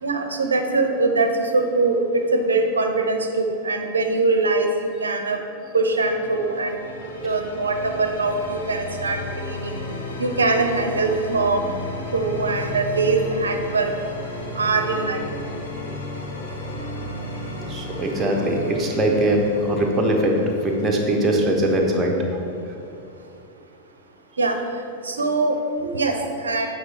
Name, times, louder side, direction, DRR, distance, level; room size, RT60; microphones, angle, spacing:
voice 1, 0.0-5.4 5.7-6.8 7.2-9.7 10.2-11.7 12.1-13.9 14.6-15.2 24.4-24.6 25.0-26.7, right 3 dB, 75° right, 4 dB, 0.7 m, -22 dB
sound 1, 5.6-23.4, left 1 dB, 65° left, 1.1 m, -34 dB
voice 2, 17.6-20.4 20.6-22.8, right 1 dB, 15° right, 0 dB, 1.1 m, -22 dB
8.1 x 5.0 x 4.3 m, 2.5 s
figure-of-eight pair, 90°, 0 cm